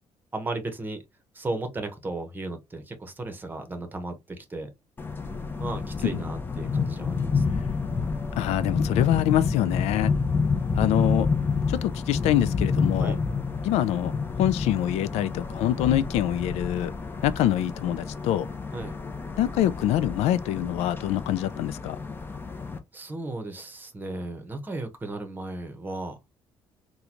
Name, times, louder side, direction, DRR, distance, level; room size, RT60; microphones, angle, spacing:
voice 1, 0.3-1.0 1.3-4.7 5.6-7.6 13.0-13.2 18.7-18.9 22.9-26.2, right 2 dB, 20° right, 0.9 m, -35 dB
sound 1, 5.0-22.8, left 4 dB, 20° left, 0.6 m, -29 dB
voice 2, 8.4-10.1 10.8-11.3 11.7-13.2 13.6-14.1 14.4-16.9 17.2-18.5 19.4-22.0, left 12 dB, 85° left, 0.4 m, -25 dB
3.7 x 2.2 x 2.9 m
cardioid pair, 130°, 11 cm